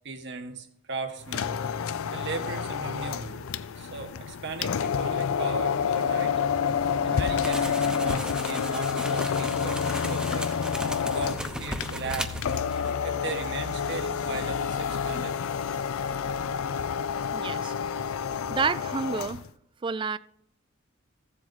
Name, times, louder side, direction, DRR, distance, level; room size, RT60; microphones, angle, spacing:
voice 1, 0.0-1.6 2.1-3.5 3.8-6.3 7.0-10.5 11.0-12.4 12.7-15.6, right 4 dB, 60° right, 1.3 m, -37 dB
sound 1, 1.2-19.5, left 7 dB, 80° left, 0.5 m, -29 dB
sound 2, 7.4-13.0 13.3-13.5, right 1 dB, 5° right, 0.8 m, -37 dB
voice 2, 17.3-17.7 18.5-19.4 19.8-20.2, right 5 dB, 25° right, 0.3 m, -29 dB
15.0 x 7.5 x 4.0 m
head